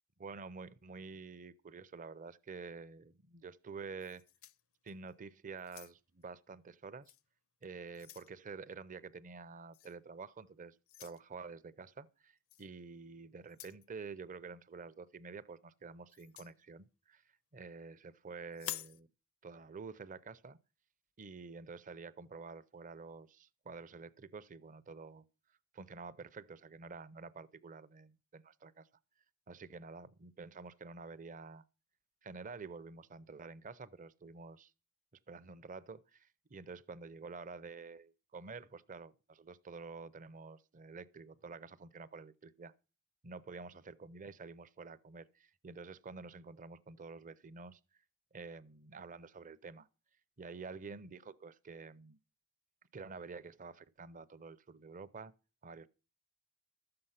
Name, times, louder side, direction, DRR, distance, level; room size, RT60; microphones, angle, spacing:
voice 1, 0.2-4.2 4.8-7.1 7.6-17.2 17.5-19.1 19.4-20.6 21.2-25.2 25.7-28.9 29.5-31.6 32.2-34.7 35.3-42.7 43.2-47.8 48.3-49.9 50.4-52.2 52.9-55.3 55.6-55.9, right 4 dB, 35° right, 0.6 m, -49 dB
sound 1, 4.0-5.1 5.6-6.2 7.0-7.2 7.6-8.3 9.7-10.0 10.9-11.2 12.5-12.7 13.4-13.9 16.1-16.5 18.5-19.0, left 13 dB, 70° left, 0.6 m, -48 dB
13.0 x 7.8 x 5.7 m
head